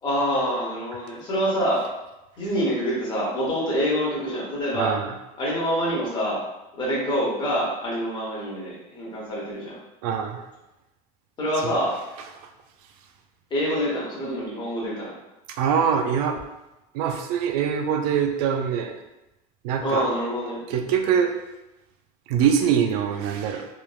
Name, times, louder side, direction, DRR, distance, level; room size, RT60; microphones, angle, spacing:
voice 1, 0.0-1.8 2.4-4.9 5.4-6.4 6.8-9.8 11.4-12.0 13.5-15.1 19.8-20.6, equal, 25° left, -5 dB, 0.9 m, -26 dB
voice 2, 4.7-5.1 10.0-10.4 11.6-11.7 15.5-16.4 16.9-19.0 19.6-20.1 20.7-21.4 22.3-23.7, right 7 dB, 80° right, 5 dB, 0.4 m, -23 dB
3.1 x 2.0 x 2.3 m, 0.97 s
supercardioid pair, 145°, 19 cm